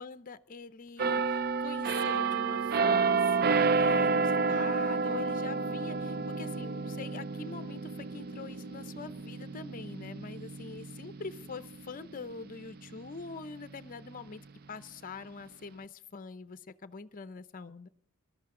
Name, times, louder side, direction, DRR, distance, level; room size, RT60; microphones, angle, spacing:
voice 1, 0.0-17.9, left 4 dB, 40° left, 0.6 m, -44 dB
sound 1, 1.0-12.5 13.0-13.2, right 4 dB, 45° right, 0.4 m, -30 dB
19.5 x 12.5 x 3.7 m
head